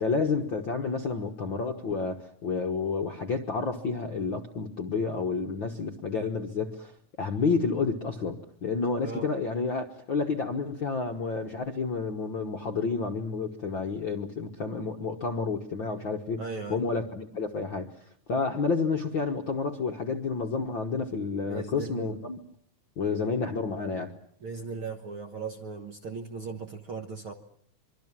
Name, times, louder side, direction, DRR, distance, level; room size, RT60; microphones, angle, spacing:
voice 1, 0.0-6.9 7.2-16.4 16.7-17.9 18.3-22.4 23.0-24.1, left 4 dB, 55° left, 4 dB, 1.4 m, -30 dB
voice 2, 16.4-16.8 21.4-22.2 24.4-27.3, right 5 dB, 55° right, 5 dB, 1.5 m, -37 dB
25.0 x 24.5 x 7.5 m, 0.65 s
omnidirectional pair, 3.9 m